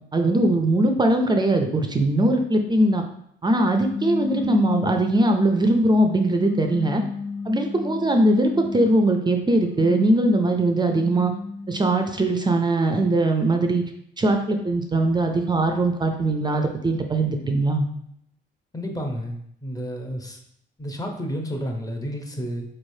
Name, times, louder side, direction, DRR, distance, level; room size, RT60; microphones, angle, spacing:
voice 1, 0.1-3.0 3.4-7.0 7.5-11.3 11.7-13.8 14.2-17.8, right 1 dB, 20° right, 4 dB, 0.4 m, -21 dB
sound 1, 3.7-5.7 6.3-9.0 9.6-11.9, left 4 dB, 85° left, 1.1 m, -33 dB
voice 2, 18.7-20.4 20.8-22.6, equal, 20° left, 3 dB, 0.7 m, -31 dB
4.1 x 3.2 x 2.7 m, 0.71 s
cardioid pair, 90°, 20 cm